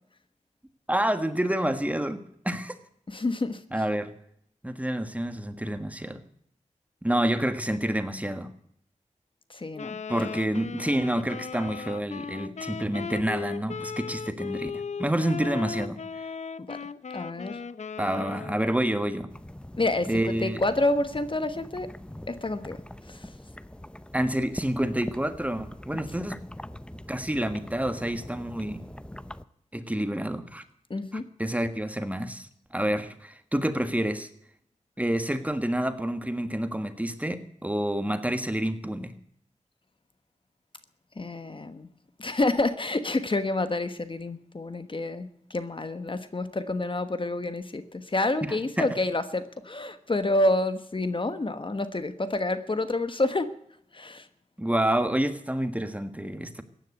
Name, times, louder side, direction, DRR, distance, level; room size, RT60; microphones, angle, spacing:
voice 1, 0.9-2.7 3.7-4.1 4.6-6.2 7.0-8.5 10.1-16.0 18.0-19.3 20.1-20.6 24.1-26.4 27.1-28.8 29.7-30.6 31.1-34.3 35.0-39.1 48.4-48.9 54.6-56.6, right 1 dB, 10° right, 9 dB, 1.5 m, -28 dB
voice 2, 3.1-3.6 9.5-10.0 16.7-16.8 17.1-17.6 19.8-21.9 22.3-22.8 23.1-23.3 30.9-31.2 41.2-41.9 42.2-53.5 53.9-54.3, left 2 dB, 40° left, 11 dB, 1.2 m, -28 dB
Wind instrument woodwind instrument, 9.8-18.8, left 5 dB, 65° left, 0.6 m, -37 dB
sound 1, 19.3-29.4, left 1 dB, 10° left, 0.7 m, -43 dB
15.0 x 10.0 x 8.3 m, 0.69 s
cardioid pair, 60°, 13 cm